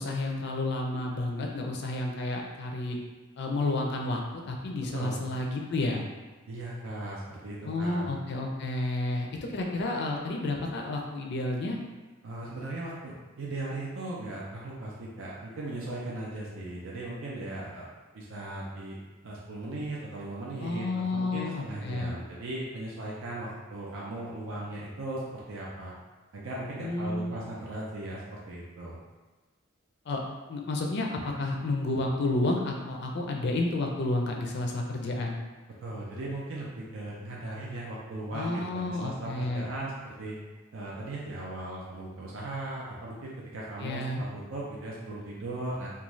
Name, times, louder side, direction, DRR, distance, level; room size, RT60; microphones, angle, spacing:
voice 1, 0.0-3.0 3.4-6.0 7.6-11.8 20.6-22.1 26.8-27.3 30.1-30.2 30.5-35.4 38.3-39.7 43.8-44.2, left 2 dB, 55° left, 1 dB, 0.4 m, -31 dB
voice 2, 6.5-8.1 12.2-17.9 18.1-19.0 19.2-25.9 26.3-29.0 35.8-40.4 40.7-45.9, right 2 dB, 70° right, -5 dB, 0.5 m, -38 dB
2.5 x 2.3 x 3.0 m, 1.2 s
head